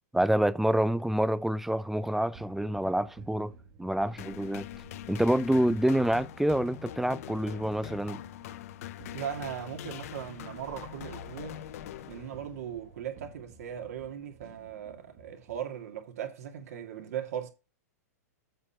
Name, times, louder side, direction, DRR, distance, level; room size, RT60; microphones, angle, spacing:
voice 1, 0.1-3.5 3.8-4.7 5.1-8.2, right 1 dB, 5° right, 0.4 m, -27 dB
sound 1, 2.3-15.6, right 4 dB, 40° right, 1.8 m, -53 dB
sound 2, 4.2-12.7, left 13 dB, 60° left, 0.5 m, -43 dB
voice 2, 9.1-11.6 12.1-17.5, right 9 dB, 70° right, 2.2 m, -38 dB
7.9 x 4.3 x 5.7 m
hypercardioid pair, 110°, 9 cm